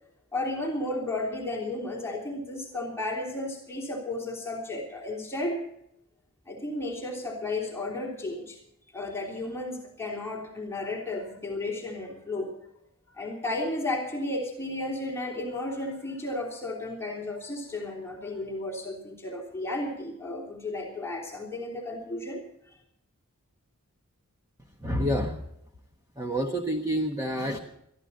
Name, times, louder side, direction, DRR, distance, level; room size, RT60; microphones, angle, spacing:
voice 1, 0.3-5.6 6.5-8.6 8.9-12.5 13.1-22.8, left 2 dB, 10° left, -2 dB, 3.3 m, -33 dB
voice 2, 24.8-25.4 26.2-27.6, equal, 15° right, 2 dB, 1.3 m, -28 dB
22.5 x 14.0 x 4.1 m, 0.75 s
head